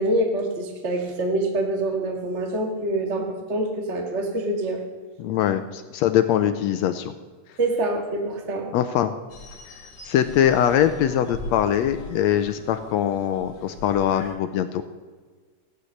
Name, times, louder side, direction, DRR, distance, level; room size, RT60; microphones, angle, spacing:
voice 1, 0.0-4.8 7.6-8.7, right 1 dB, 30° right, 3 dB, 1.4 m, -25 dB
voice 2, 5.2-7.1 8.7-9.1 10.0-14.8, left 10 dB, 75° left, 10 dB, 1.7 m, -22 dB
sound 1, 9.3-14.3, left 2 dB, 55° left, 3.1 m, -41 dB
15.0 x 9.7 x 6.5 m, 1.5 s
omnidirectional pair, 3.5 m